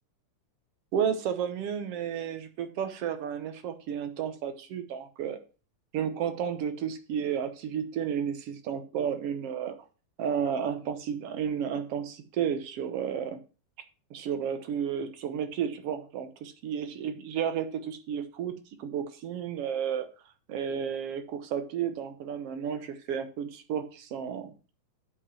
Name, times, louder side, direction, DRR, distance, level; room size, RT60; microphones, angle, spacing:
voice 1, 0.9-5.4 5.9-9.8 10.2-13.4 14.1-18.5 18.8-20.1 20.5-24.5, right 8 dB, 65° right, 9 dB, 1.7 m, -32 dB
8.7 x 5.4 x 7.0 m, 0.35 s
omnidirectional pair, 3.4 m